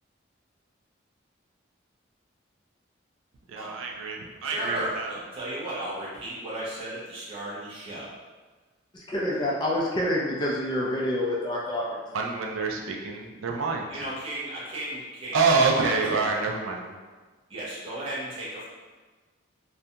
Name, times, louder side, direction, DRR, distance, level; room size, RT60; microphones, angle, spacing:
voice 1, 3.5-5.1 12.1-14.0 15.3-17.0, right 4 dB, 85° right, 1 dB, 0.4 m, -26 dB
voice 2, 4.4-8.2 13.9-15.4 15.7-16.0 17.5-18.6, right 1 dB, 30° right, -8 dB, 0.6 m, -34 dB
voice 3, 8.9-11.8, left 1 dB, 20° left, -4 dB, 0.3 m, -27 dB
2.4 x 2.2 x 2.7 m, 1.3 s
head